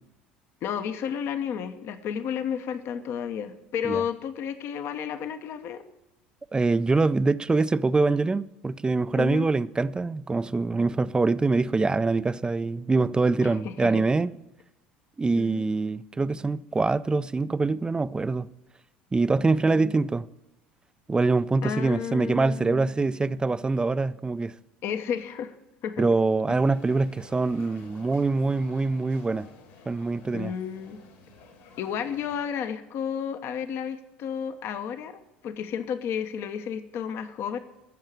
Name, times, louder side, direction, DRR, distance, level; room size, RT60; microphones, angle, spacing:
voice 1, 0.6-5.8 9.2-9.5 13.4-14.1 15.4-15.6 19.4-19.9 21.6-22.9 24.8-25.5 25.8-26.1 26.5-26.6 30.3-31.0 31.8-37.6, left 8 dB, 55° left, 1.0 m, -32 dB
voice 2, 6.5-14.3 15.2-18.5 19.1-20.3 21.1-24.5 26.0-29.5 29.9-30.5, right 3 dB, 15° right, 0.5 m, -24 dB
sound 1, 26.5-32.4, left 3 dB, 70° left, 3.6 m, -52 dB
15.5 x 6.6 x 7.5 m
hypercardioid pair, 70°, 5 cm